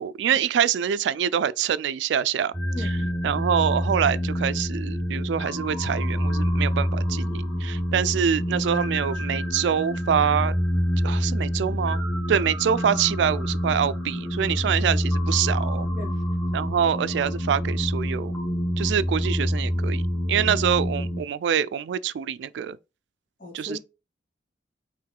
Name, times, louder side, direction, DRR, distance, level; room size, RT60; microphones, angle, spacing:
voice 1, 0.0-3.0 3.2-10.5 11.0-12.0 12.3-15.9 16.5-18.3 18.8-22.8 23.5-23.8, right 8 dB, 80° right, 0.3 m, -25 dB
sound 1, 2.5-21.2, equal, 5° left, 1.4 m, -27 dB
voice 2, 2.7-3.1 15.9-16.2 23.4-23.8, left 1 dB, 50° left, 1.9 m, -38 dB
4.7 x 3.0 x 3.7 m
head